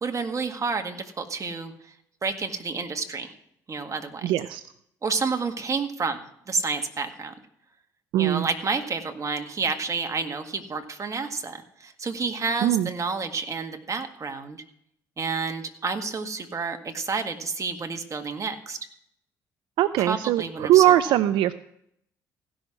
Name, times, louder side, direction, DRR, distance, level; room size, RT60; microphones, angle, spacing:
voice 1, 0.0-1.7 2.2-3.3 3.7-4.3 5.0-6.2 6.5-7.3 8.2-14.6 15.2-18.8 20.0-20.8, right 4 dB, 40° right, 5 dB, 1.8 m, -30 dB
voice 2, 4.2-4.6 8.1-8.5 12.6-12.9 19.8-21.5, right 13 dB, 75° right, 13 dB, 0.5 m, -21 dB
16.0 x 6.3 x 6.3 m, 0.72 s
hypercardioid pair, 55°, 9 cm